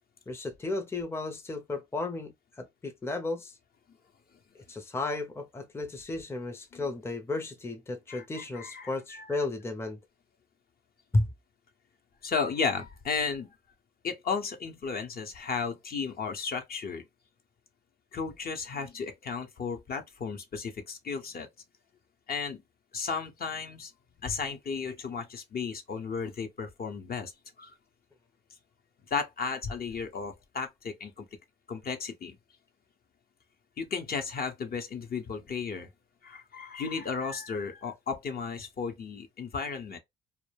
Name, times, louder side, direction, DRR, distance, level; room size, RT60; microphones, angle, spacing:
voice 1, 0.3-3.5 4.7-10.0 11.1-11.3, left 2 dB, 10° left, 0.5 m, -33 dB
voice 2, 8.1-9.3 12.2-13.5 14.0-17.0 18.1-21.5 22.3-22.6 22.9-23.9 24.2-27.3 27.6-27.7 29.1-31.3 31.7-32.4 33.8-35.9 36.2-40.0, left 5 dB, 50° left, 0.7 m, -34 dB
2.2 x 2.0 x 3.2 m
cardioid pair, 90°, 20 cm